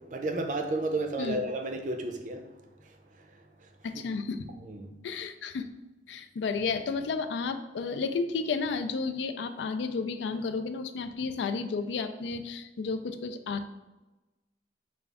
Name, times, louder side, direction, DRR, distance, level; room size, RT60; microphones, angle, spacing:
voice 1, 0.0-2.4 4.7-4.9, right 2 dB, 45° right, 4 dB, 0.5 m, -32 dB
voice 2, 3.8-4.4 5.0-5.7 6.1-13.7, left 4 dB, 90° left, 9 dB, 0.4 m, -32 dB
5.0 x 2.3 x 3.4 m, 1.1 s
head